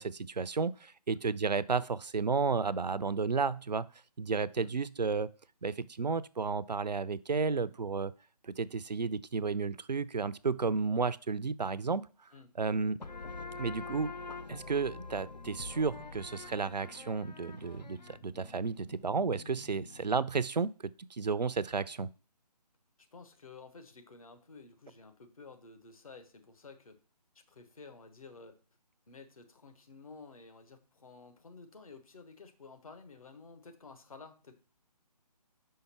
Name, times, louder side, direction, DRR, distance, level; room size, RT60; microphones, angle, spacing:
voice 1, 0.0-3.9 4.2-5.3 5.6-8.1 8.4-12.1 12.6-13.0 13.6-14.1 14.5-20.7 21.0-22.1, right 4 dB, 80° right, 17 dB, 0.5 m, -32 dB
sound 1, 13.0-20.3, left 3 dB, 80° left, 0.8 m, -46 dB
voice 2, 23.1-27.0 27.5-28.6 29.1-34.5, left 4 dB, 55° left, 7 dB, 1.4 m, -52 dB
5.6 x 5.2 x 5.8 m, 0.38 s
figure-of-eight pair, 150°, 21 cm